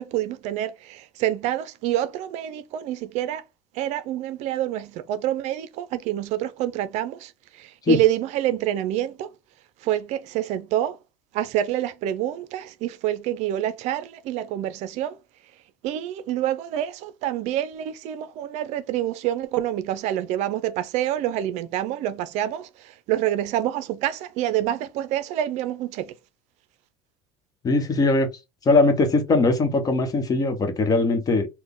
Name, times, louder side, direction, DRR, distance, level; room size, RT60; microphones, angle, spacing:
voice 1, 0.0-3.4 3.7-9.3 9.8-11.0 11.3-15.2 15.8-26.1, right 12 dB, 60° right, 0.5 m, -27 dB
voice 2, 27.6-28.3 28.7-31.5, left 3 dB, 30° left, 1.0 m, -20 dB
4.0 x 2.2 x 3.5 m
supercardioid pair, 120°, 13 cm